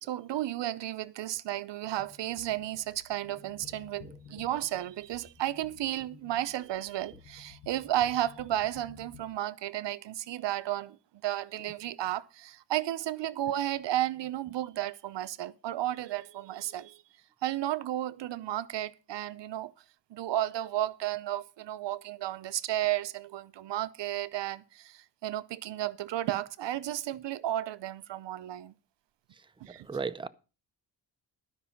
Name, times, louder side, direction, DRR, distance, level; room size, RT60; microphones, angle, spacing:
voice 1, 0.0-11.0 11.2-17.0 17.4-19.7 20.1-28.7 29.6-29.9, right 13 dB, 80° right, 0.7 m, -33 dB
sound 1, 1.8-9.2, left 7 dB, 85° left, 1.5 m, -54 dB
voice 2, 29.3-30.3, right 5 dB, 10° right, 0.6 m, -37 dB
12.5 x 5.4 x 7.1 m
wide cardioid pair, 115°, 42 cm